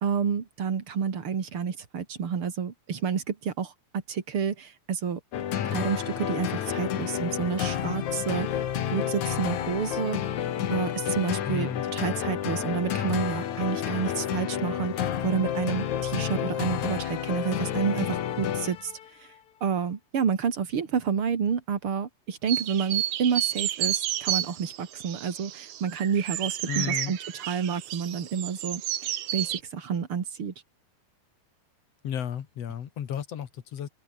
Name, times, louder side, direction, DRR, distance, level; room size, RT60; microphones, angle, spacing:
voice 1, 0.0-5.2 5.6-8.5 8.9-10.3 10.7-18.9 19.6-27.2 27.5-28.8 29.3-30.5, right 7 dB, 50° right, 3.1 m, -29 dB
sound 1, 5.3-19.1, left 10 dB, 75° left, 3.1 m, -30 dB
voice 2, 11.5-11.9 26.7-27.2 32.0-33.9, left 9 dB, 60° left, 2.6 m, -33 dB
sound 2, 22.5-29.6, right 12 dB, 80° right, 2.6 m, -31 dB
omnidirectional pair, 3.4 m